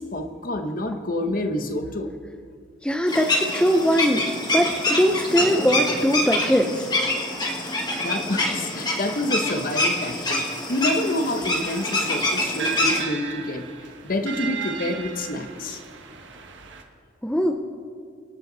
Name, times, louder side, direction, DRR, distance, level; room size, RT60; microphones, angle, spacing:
voice 1, 0.0-2.1 8.0-10.4 10.7-13.6 14.0-15.8, left 1 dB, 45° left, 7 dB, 1.0 m, -28 dB
voice 2, 2.8-4.3 4.5-6.9 17.2-17.5, equal, 5° left, 4 dB, 0.5 m, -21 dB
sound 1, 3.1-13.0, left 1 dB, 20° left, 1.7 m, -25 dB
sound 2, 11.6-16.8, right 6 dB, 70° right, 1.3 m, -36 dB
26.0 x 9.0 x 4.0 m, 2.2 s
head